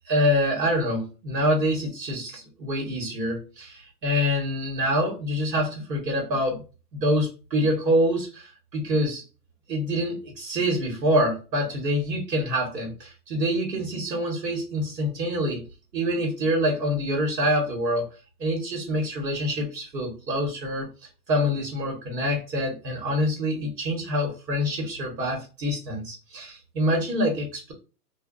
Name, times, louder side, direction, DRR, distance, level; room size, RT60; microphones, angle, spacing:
voice 1, 0.1-6.6 6.9-9.2 9.7-15.6 15.9-18.1 18.4-20.9 21.3-27.7, equal, 90° right, 1 dB, 1.2 m, -26 dB
2.7 x 2.2 x 2.4 m, 0.32 s
hypercardioid pair, 145°, 49 cm